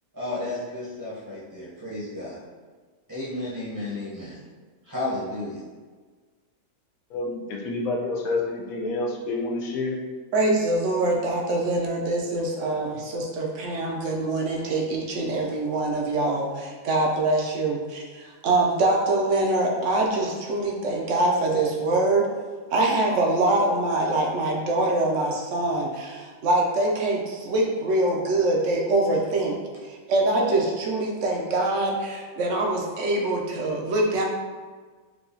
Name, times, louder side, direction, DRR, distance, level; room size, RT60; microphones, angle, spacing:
voice 1, 0.1-2.4 3.1-4.4 4.8-5.6, left 2 dB, 20° right, -9 dB, 0.6 m, -32 dB
voice 2, 7.1-10.0, left 2 dB, 75° left, 0 dB, 1.0 m, -28 dB
voice 3, 10.3-22.3 22.7-29.6 29.9-34.3, right 2 dB, 65° right, -1 dB, 0.8 m, -24 dB
4.7 x 2.3 x 2.6 m, 1.4 s
omnidirectional pair, 1.5 m